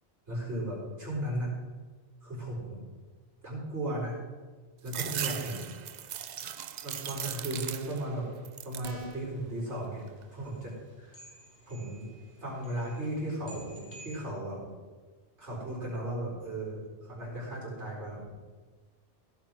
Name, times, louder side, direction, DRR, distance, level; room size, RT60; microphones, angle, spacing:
voice 1, 0.3-1.5 2.2-2.8 3.4-4.2 4.8-5.6 6.8-8.2 8.6-10.0 10.3-11.2 11.7-12.1 12.4-14.6 15.4-18.3, right 1 dB, 75° right, -4 dB, 4.9 m, -36 dB
sound 1, 4.9-8.1 8.4-9.0 9.5-10.2, right 9 dB, 55° right, 0.5 m, -38 dB
sound 2, 8.8-9.4, equal, 40° right, 1.6 m, -43 dB
sound 3, 9.1-14.2, right 1 dB, 10° right, 4.0 m, -52 dB
16.0 x 5.7 x 6.1 m, 1.4 s
omnidirectional pair, 1.2 m